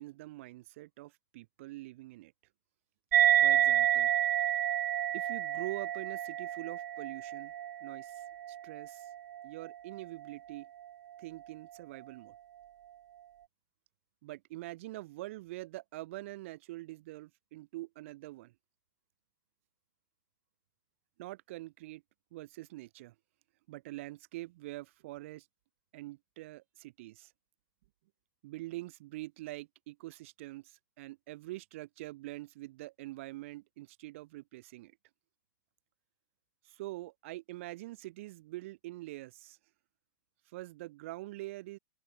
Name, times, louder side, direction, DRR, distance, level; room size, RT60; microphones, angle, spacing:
voice 1, 0.0-2.3 3.4-4.1 5.1-7.5 7.8-9.1 9.4-10.7 11.2-12.3 14.2-18.5 21.2-22.0 22.3-23.1 23.7-25.5 25.9-27.3 28.4-35.0 36.6-39.6 40.5-41.8, right 18 dB, 40° right, 4.2 m, -45 dB
sound 1, 3.1-10.0, right 11 dB, 55° right, 1.7 m, -29 dB
open air
hypercardioid pair, 170°, 11 cm